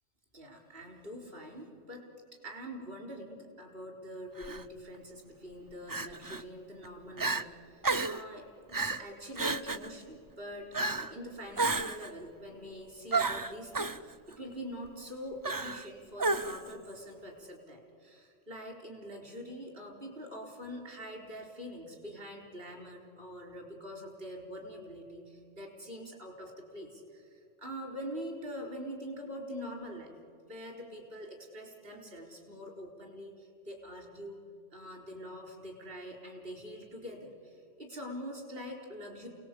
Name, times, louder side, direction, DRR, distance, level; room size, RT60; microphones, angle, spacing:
voice 1, 0.3-2.1 2.3-30.1 30.4-34.4 34.7-39.3, equal, 50° right, 1 dB, 4.9 m, -44 dB
Crying sobbing, 4.4-4.6 5.9-6.4 6.8-6.9 7.2-7.4 7.8-8.2 8.7-9.0 9.4-9.9 10.7-11.1 11.6-12.1 13.1-14.0 15.4-15.9 16.2-16.7, right 3 dB, 25° right, 0.5 m, -31 dB
28.5 x 19.0 x 8.6 m, 2.4 s
omnidirectional pair, 1.2 m